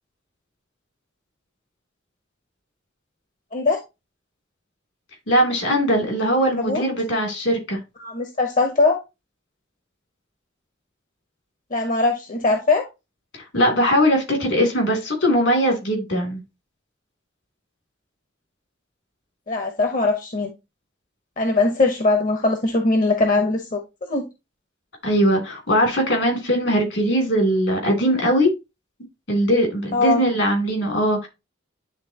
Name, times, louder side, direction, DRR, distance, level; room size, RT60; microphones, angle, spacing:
voice 1, 5.3-7.8 13.3-16.4 25.0-28.5 29.3-31.3, equal, 75° left, 2.8 m, -20 dB
voice 2, 8.0-9.0 11.7-12.9 19.5-20.5 21.4-23.8 24.1-24.3 29.9-30.2, left 3 dB, 45° left, 0.8 m, -21 dB
9.6 x 3.7 x 2.9 m
head